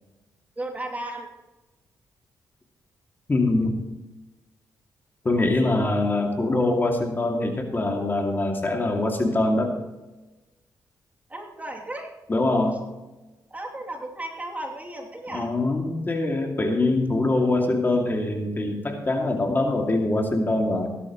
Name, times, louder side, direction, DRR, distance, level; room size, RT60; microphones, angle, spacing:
voice 1, 0.6-1.3 11.3-12.1 13.5-15.5, right 1 dB, 20° right, 0 dB, 2.8 m, -34 dB
voice 2, 3.3-3.8 5.2-9.8 12.3-12.8 15.3-20.9, left 2 dB, 30° left, 2 dB, 2.4 m, -23 dB
17.0 x 12.0 x 3.1 m, 1.1 s
cardioid pair, 75°, 7 cm